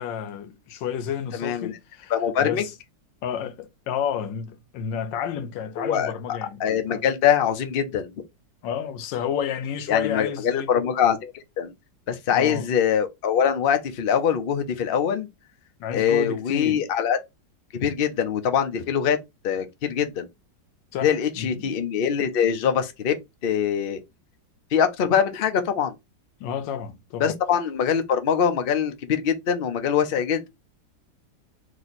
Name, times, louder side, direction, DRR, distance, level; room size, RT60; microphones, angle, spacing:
voice 1, 0.0-2.1 2.4-2.7 3.2-7.1 8.6-10.7 12.3-12.7 15.8-16.9 20.9-21.8 26.4-27.3, left 8 dB, 90° left, 1.4 m, -31 dB
voice 2, 1.4-1.7 2.1-2.6 5.8-8.1 9.9-11.7 12.1-15.3 15.9-17.2 17.7-19.2 19.4-20.3 21.0-23.1 23.4-24.0 24.7-25.9 27.2-30.5, left 8 dB, 75° left, 0.5 m, -23 dB
3.2 x 2.9 x 4.0 m
omnidirectional pair, 1.9 m